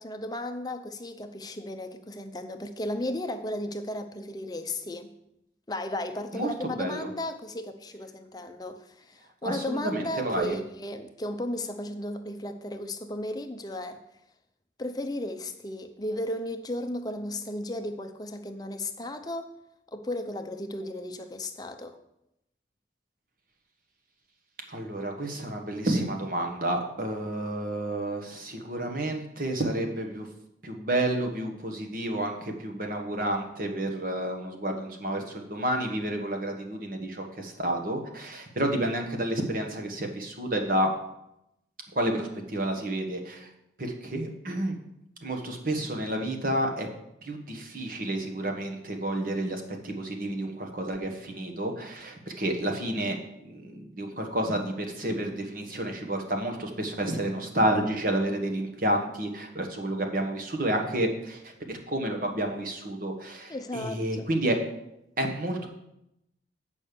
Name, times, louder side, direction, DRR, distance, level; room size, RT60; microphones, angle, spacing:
voice 1, 0.0-5.1 5.7-14.0 14.8-19.5 19.9-22.0 63.5-64.2, left 1 dB, 20° left, 0.6 m, -35 dB
voice 2, 6.3-7.1 9.4-10.6 24.7-30.3 30.6-40.9 41.9-43.5 43.8-44.8 45.2-46.9 47.2-53.2 53.4-64.6 65.2-65.7, right 1 dB, 50° right, 1.3 m, -30 dB
8.5 x 5.3 x 6.8 m
head